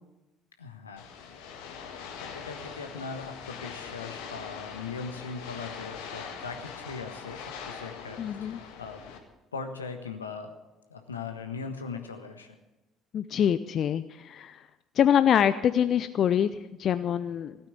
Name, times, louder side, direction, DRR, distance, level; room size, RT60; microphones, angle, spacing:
voice 1, 0.6-1.0 2.2-9.0 9.5-10.5 10.9-12.5, left 4 dB, 85° left, 6 dB, 1.3 m, -39 dB
sound 1, 1.0-9.2, left 6 dB, 70° left, 1.8 m, -42 dB
voice 2, 8.2-8.6 13.1-14.7 15.0-17.6, left 9 dB, 50° left, 12 dB, 0.5 m, -25 dB
16.0 x 9.0 x 8.4 m, 1.1 s
figure-of-eight pair, 55°, 0 cm